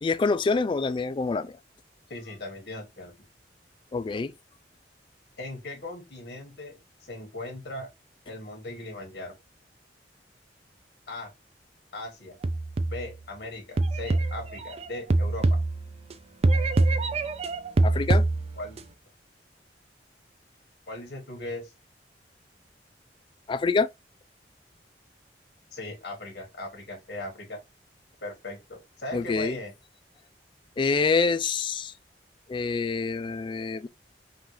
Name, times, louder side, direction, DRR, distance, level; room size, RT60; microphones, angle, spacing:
voice 1, 0.0-1.6 3.9-4.3 17.8-18.2 23.5-23.9 29.1-29.6 30.8-31.9 32.5-33.9, left 4 dB, 30° left, 0.3 m, -26 dB
voice 2, 2.1-3.1 5.4-7.9 8.2-9.3 11.1-11.3 11.9-12.3 12.9-15.6 18.5-18.8 20.9-21.7 25.7-27.6 28.2-29.7, left 2 dB, 65° left, 1.7 m, -38 dB
sound 1, 12.4-13.2 13.8-16.1 16.4-18.8, right 2 dB, 35° right, 0.4 m, -24 dB
5.7 x 2.5 x 3.2 m
head